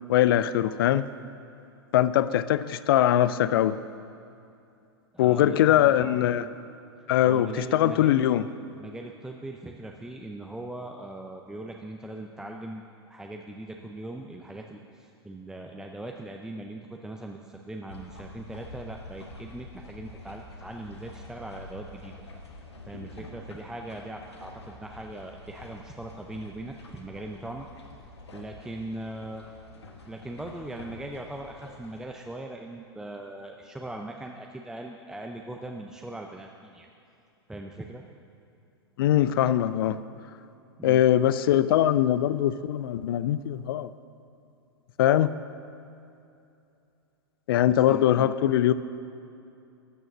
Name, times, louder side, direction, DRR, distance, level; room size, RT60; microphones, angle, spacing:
voice 1, 0.1-1.1 1.9-3.8 5.2-6.4 7.1-8.4 39.0-40.0 40.8-43.9 45.0-45.4 47.5-48.7, left 12 dB, 60° left, 15 dB, 0.4 m, -22 dB
voice 2, 5.1-6.5 7.2-8.3 8.8-12.8 13.1-22.1 22.9-27.7 28.3-29.5 30.1-36.9 37.5-38.0 40.8-41.0 47.7-48.3, right 1 dB, 5° right, 2 dB, 0.6 m, -40 dB
sound 1, 17.9-32.1, left 2 dB, 80° left, 1.5 m, -47 dB
12.5 x 6.3 x 6.6 m, 2.6 s
figure-of-eight pair, 100°, 14 cm